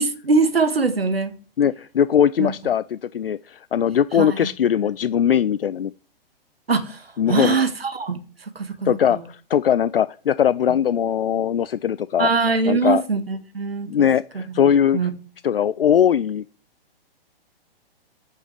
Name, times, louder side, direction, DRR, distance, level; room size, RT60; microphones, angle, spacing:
voice 1, 0.0-1.3 2.4-2.5 4.2-4.3 6.7-7.0 7.3-9.3 10.7-10.8 12.2-14.1 14.3-15.1, right 4 dB, 75° right, 1.7 m, -23 dB
voice 2, 1.6-5.9 7.2-7.6 8.8-12.3 12.7-13.0 13.9-15.0 15.4-16.4, left 9 dB, 70° left, 0.5 m, -20 dB
9.0 x 6.5 x 7.4 m
figure-of-eight pair, 120°, 30 cm